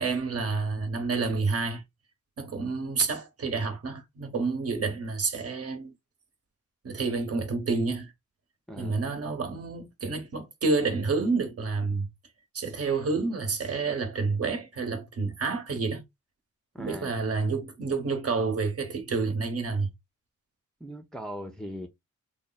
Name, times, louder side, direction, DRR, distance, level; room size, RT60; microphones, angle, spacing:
voice 1, 0.0-1.8 2.4-5.9 6.8-8.1 8.8-12.1 12.5-16.0 16.8-19.9, right 4 dB, 50° right, 1.3 m, -29 dB
voice 2, 8.7-9.0 16.7-17.1 20.8-21.9, equal, ahead, 0.5 m, -39 dB
3.4 x 2.2 x 4.0 m
cardioid pair, 105°, 31 cm